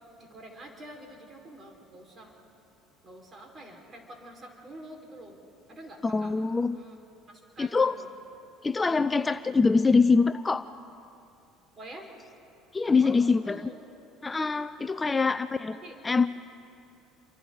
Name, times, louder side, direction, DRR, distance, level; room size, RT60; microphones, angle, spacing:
voice 1, 0.2-2.4 3.0-5.4 5.7-6.3 6.7-7.0 7.3-8.1 11.8-12.1 13.0-13.8 15.1-15.4 15.7-16.0, right 1 dB, 35° right, 1 dB, 5.0 m, -47 dB
voice 2, 6.0-6.8 7.6-7.9 8.6-10.7 12.7-13.6 14.2-15.8 16.0-16.3, left 4 dB, 20° left, 11 dB, 0.5 m, -24 dB
29.0 x 25.0 x 4.0 m, 2.7 s
hypercardioid pair, 75°, 0 cm